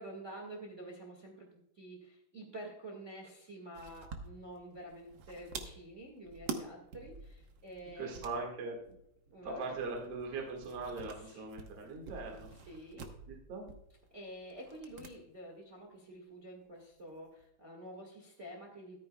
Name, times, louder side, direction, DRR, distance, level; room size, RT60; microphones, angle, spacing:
voice 1, 0.0-1.5 1.7-8.4 9.3-9.7 11.2-11.4 12.7-13.1 14.1-19.0, right 1 dB, 30° right, 0 dB, 1.5 m, -48 dB
sound 1, 3.7-15.2 15.4-15.5 16.7-17.5, right 5 dB, 75° right, 1.0 m, -48 dB
voice 2, 8.0-9.0 9.4-12.5 13.3-13.7, right 3 dB, 50° right, 0 dB, 2.6 m, -40 dB
14.0 x 13.5 x 2.3 m, 0.78 s
omnidirectional pair, 3.8 m